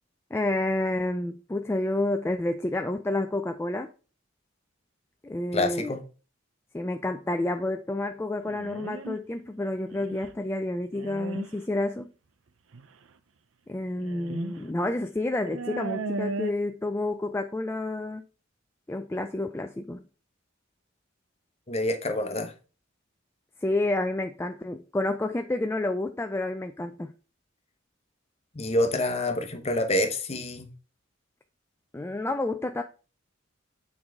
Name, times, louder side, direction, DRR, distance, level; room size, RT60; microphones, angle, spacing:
voice 1, 0.3-3.9 5.2-5.9 6.7-12.1 13.7-18.2 18.9-20.0 23.6-27.1 31.9-32.8, left 2 dB, 10° left, 0.3 m, -29 dB
voice 2, 5.5-6.0 21.7-22.5 28.5-30.7, left 1 dB, 30° left, 1.0 m, -27 dB
sound 1, 8.5-9.2 9.9-10.3 10.9-11.5 12.7-12.8 14.0-14.6 14.9-15.0 15.5-16.5, right 3 dB, 75° right, 0.6 m, -35 dB
8.7 x 4.7 x 3.6 m
head